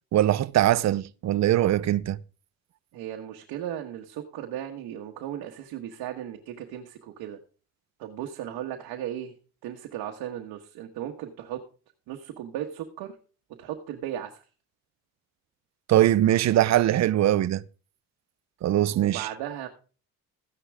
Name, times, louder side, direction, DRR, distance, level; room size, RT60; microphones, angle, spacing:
voice 1, 0.1-2.2 15.9-17.6 18.6-19.3, right 13 dB, 50° right, 0.6 m, -22 dB
voice 2, 2.9-7.4 8.0-9.3 9.6-11.6 12.1-13.1 13.6-14.4 18.9-19.7, right 11 dB, 90° right, 1.5 m, -36 dB
15.0 x 9.9 x 3.6 m
cardioid pair, 105°, 36 cm